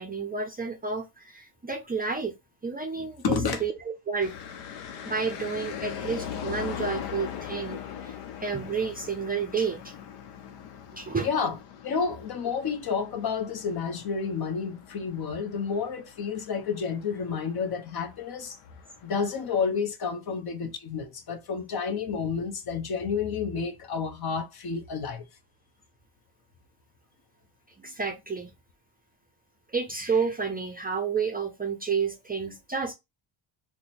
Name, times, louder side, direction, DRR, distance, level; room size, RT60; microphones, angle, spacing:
voice 1, 0.0-2.4 2.6-3.7 4.1-4.3 5.0-9.9 10.9-11.3 27.8-28.5 29.7-32.9, right 5 dB, 20° right, 0.5 m, -30 dB
voice 2, 3.2-3.6 11.2-11.6 11.8-18.6 19.0-25.3, left 5 dB, 50° left, 0.8 m, -30 dB
sound 1, 4.2-19.7, left 8 dB, 85° left, 0.7 m, -41 dB
2.8 x 2.2 x 4.1 m
cardioid pair, 85°, 49 cm